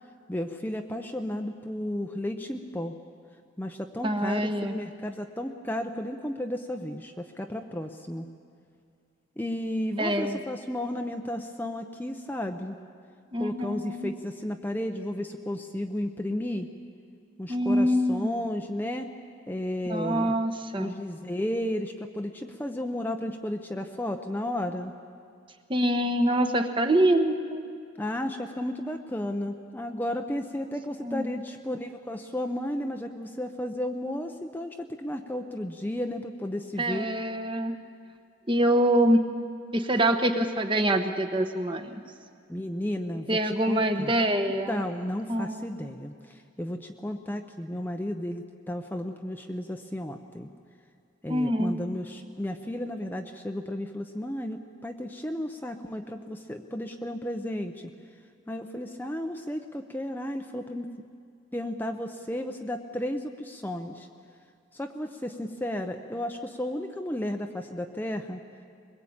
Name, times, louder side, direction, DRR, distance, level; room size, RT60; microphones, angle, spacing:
voice 1, 0.3-2.9 3.6-8.3 9.4-12.8 13.4-16.7 17.4-19.1 19.5-20.3 20.8-24.9 28.0-37.1 42.5-44.1 44.4-50.5 51.2-57.9 58.5-60.9 61.5-64.1 64.7-68.4, left 1 dB, 10° left, 4 dB, 0.7 m, -33 dB
voice 2, 4.0-4.7 10.0-10.4 13.3-14.1 17.5-18.3 19.9-20.9 25.7-27.6 31.0-31.3 36.8-37.8 38.5-39.2 39.7-42.0 43.3-44.8 45.3-45.7 51.3-51.7, right 1 dB, 25° right, 6 dB, 1.2 m, -25 dB
22.5 x 21.0 x 8.7 m, 2.3 s
head